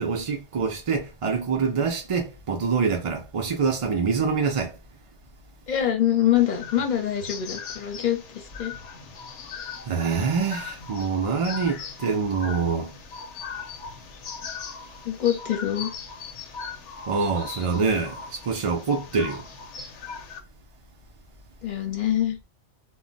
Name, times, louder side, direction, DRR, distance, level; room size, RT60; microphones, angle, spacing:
voice 1, 0.0-4.7 9.9-12.9 17.1-19.4, right 5 dB, 60° right, 0.3 m, -25 dB
voice 2, 5.7-8.7 15.0-15.9 21.6-22.4, left 11 dB, 45° left, 0.7 m, -24 dB
sound 1, 6.3-20.4, left 6 dB, 85° left, 0.9 m, -39 dB
2.2 x 2.0 x 3.7 m
omnidirectional pair, 1.2 m